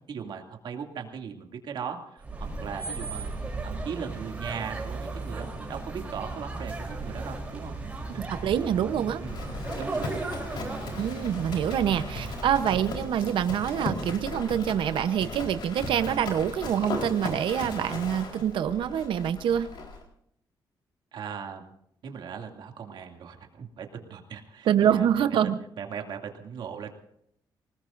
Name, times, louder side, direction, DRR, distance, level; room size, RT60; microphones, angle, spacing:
voice 1, 0.1-3.3 3.6-7.8 8.1-8.3 9.2-10.0 12.1-12.3 12.7-12.8 21.1-21.7 22.0-25.2 25.8-26.9, right 6 dB, 70° right, 3 dB, 2.5 m, -39 dB
sound 1, 2.2-13.3, right 3 dB, 15° right, 3.6 m, -36 dB
voice 2, 8.1-9.2 11.0-19.7 24.7-25.6, right 9 dB, 85° right, 10 dB, 0.9 m, -26 dB
Livestock farm animals working animals, 9.2-20.0, left 3 dB, 65° left, 4.1 m, -37 dB
26.0 x 19.0 x 2.6 m, 0.72 s
wide cardioid pair, 170°, 8 cm